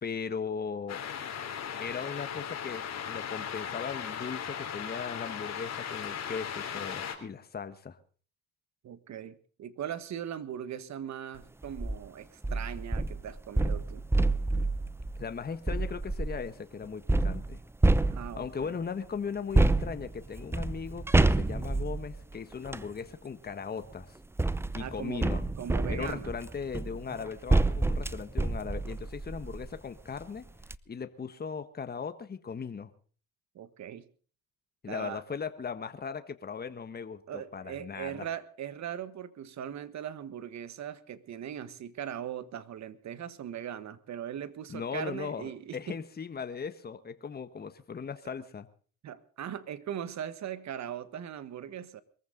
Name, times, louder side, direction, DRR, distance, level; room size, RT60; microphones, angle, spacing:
voice 1, 0.0-1.0 1.8-8.0 15.2-17.6 18.4-24.2 24.7-25.4 25.9-30.5 30.9-32.9 34.8-38.3 44.7-48.7, left 6 dB, 30° left, 10 dB, 1.4 m, -38 dB
sound 1, 0.9-7.2, left 8 dB, 50° left, 3.5 m, -37 dB
voice 2, 8.8-14.1 18.0-18.8 24.8-26.3 33.5-34.1 34.9-35.2 37.3-46.0 49.0-52.0, right 9 dB, 55° right, 14 dB, 1.5 m, -40 dB
sound 2, 11.6-12.0 12.4-16.5 17.1-18.6 19.5-22.9 23.8-29.8 30.2-30.3 30.6-30.8, right 2 dB, 10° right, 0.6 m, -28 dB
22.5 x 14.5 x 4.0 m, 0.41 s
cardioid pair, 90°, 33 cm